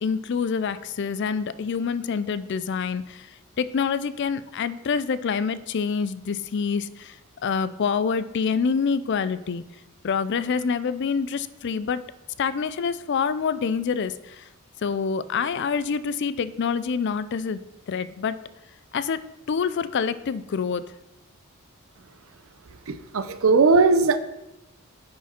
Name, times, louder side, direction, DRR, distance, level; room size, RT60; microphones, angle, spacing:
voice 1, 0.0-3.3 3.6-7.2 7.4-9.6 10.0-12.0 12.4-14.5 14.8-17.6 17.9-18.4 18.9-19.2 19.5-20.8, left 6 dB, 50° left, 15 dB, 0.4 m, -26 dB
voice 2, 22.9-24.2, right 4 dB, 65° right, 12 dB, 0.6 m, -19 dB
10.0 x 4.7 x 4.3 m, 0.93 s
head